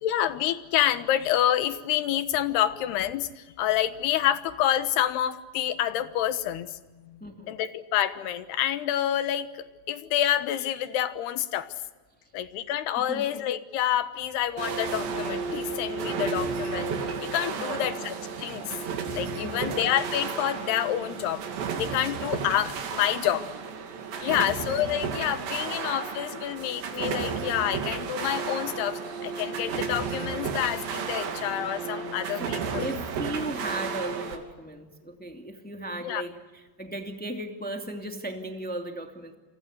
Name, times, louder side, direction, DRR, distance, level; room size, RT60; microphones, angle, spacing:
voice 1, 0.0-6.7 7.1-7.2 7.5-9.5 9.9-11.7 12.3-16.9 17.3-18.7 19.1-21.4 21.8-23.5 24.2-32.9 36.0-36.2, left 11 dB, 75° left, 12 dB, 3.1 m, -28 dB
voice 2, 12.9-13.3 17.6-18.0 19.4-19.7 24.3-24.6 32.3-32.5 32.8-39.3, right 1 dB, 5° left, 4 dB, 1.0 m, -36 dB
sound 1, 14.6-34.4, right 5 dB, 80° right, 4.9 m, -33 dB
29.5 x 24.5 x 8.1 m, 1.3 s
omnidirectional pair, 5.0 m